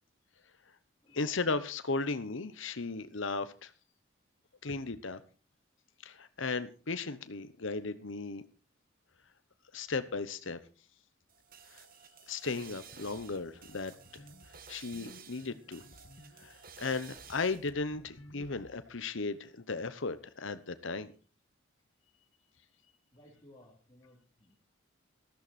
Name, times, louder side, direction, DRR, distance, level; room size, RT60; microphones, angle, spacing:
voice 1, 1.1-3.7 4.6-5.2 6.0-8.4 9.7-10.6 11.7-11.8 12.3-14.2 14.7-15.8 16.4-21.1, left 3 dB, 70° left, 12 dB, 1.0 m, -36 dB
sound 1, 11.3-17.7, right 7 dB, 45° right, 1.4 m, -54 dB
sound 2, 12.6-18.8, left 1 dB, 55° left, 1.7 m, -57 dB
voice 2, 23.1-24.7, left 1 dB, 20° left, -3 dB, 3.1 m, -60 dB
14.0 x 13.0 x 4.2 m, 0.35 s
head